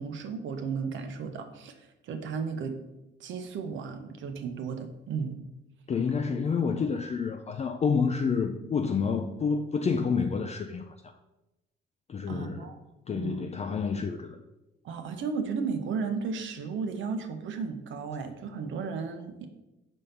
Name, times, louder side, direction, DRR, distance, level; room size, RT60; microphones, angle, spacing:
voice 1, 0.0-2.8 3.2-5.4 12.3-12.8 13.1-13.5 14.8-19.5, right 5 dB, 75° right, 7 dB, 0.8 m, -34 dB
voice 2, 5.9-11.1 12.1-12.7 13.1-14.4, left 5 dB, 35° left, 6 dB, 0.4 m, -29 dB
5.3 x 3.6 x 5.6 m, 0.97 s
cardioid pair, 90°, 20 cm